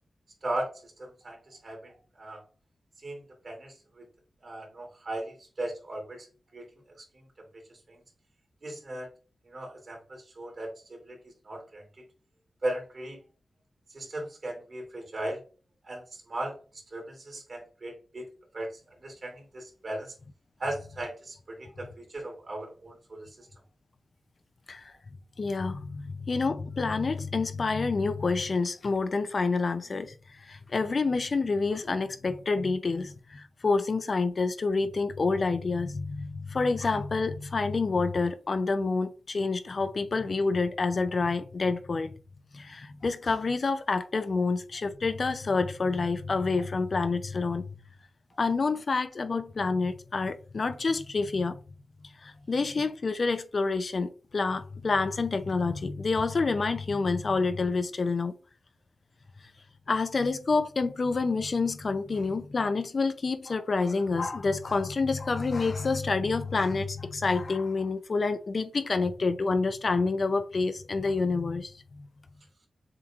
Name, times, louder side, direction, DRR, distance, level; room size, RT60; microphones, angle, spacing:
voice 1, 0.4-2.4 3.0-4.1 4.4-6.3 6.5-6.7 7.1-8.0 8.6-9.1 9.4-12.0 12.6-13.2 13.9-15.4 15.8-18.7 19.0-20.1 20.6-23.5 48.3-48.4, right 1 dB, 50° right, 2.6 m, -38 dB
voice 2, 25.4-42.2 42.5-47.7 48.4-51.6 52.2-58.3 59.9-72.0, left 4 dB, 50° left, 0.5 m, -28 dB
7.3 x 3.0 x 2.4 m
wide cardioid pair, 100°, 0 cm